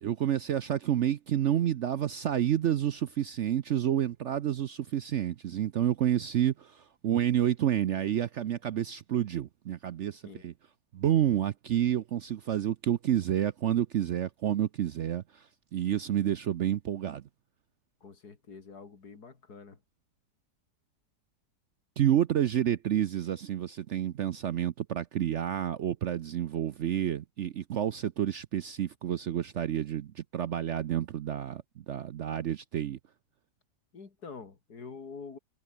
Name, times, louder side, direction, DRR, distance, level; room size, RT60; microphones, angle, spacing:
voice 1, 0.0-10.5 10.9-17.2 22.0-33.0, right 10 dB, 65° right, 0.7 m, -29 dB
voice 2, 18.0-19.8 33.9-35.4, left 5 dB, 65° left, 3.2 m, -46 dB
omnidirectional pair, 1.8 m